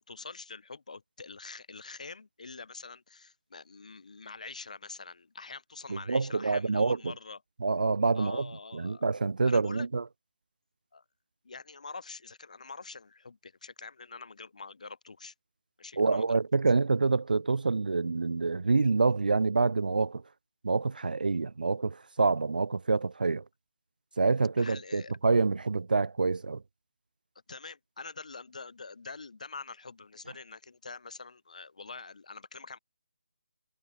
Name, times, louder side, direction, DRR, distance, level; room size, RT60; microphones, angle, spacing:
voice 1, 0.0-7.4 8.1-9.1 9.4-9.9 10.9-11.0 11.4-15.3 15.8-16.4 24.6-25.1 27.5-32.8, left 4 dB, 50° left, 3.3 m, -45 dB
voice 2, 5.9-7.0 7.6-8.5 8.7-10.0 16.0-20.2 20.6-23.4 24.2-26.6, right 4 dB, 70° right, 0.6 m, -27 dB
hypercardioid pair, 175°, 5 cm